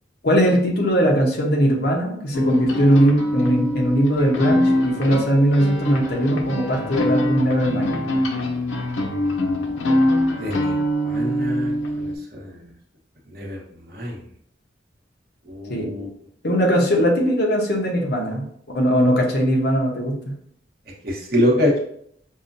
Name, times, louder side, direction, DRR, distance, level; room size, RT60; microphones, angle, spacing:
voice 1, 0.2-8.0 15.7-15.9 16.4-18.4 18.7-20.3, equal, 55° left, 0 dB, 0.8 m, -19 dB
sound 1, 2.3-12.2, left 1 dB, 85° left, 0.5 m, -23 dB
voice 2, 10.4-10.7 11.0-12.6 13.3-13.6 13.9-14.2 15.5-16.1 21.0-21.8, left 1 dB, 55° right, -2 dB, 1.0 m, -24 dB
5.5 x 2.2 x 2.6 m, 0.68 s
head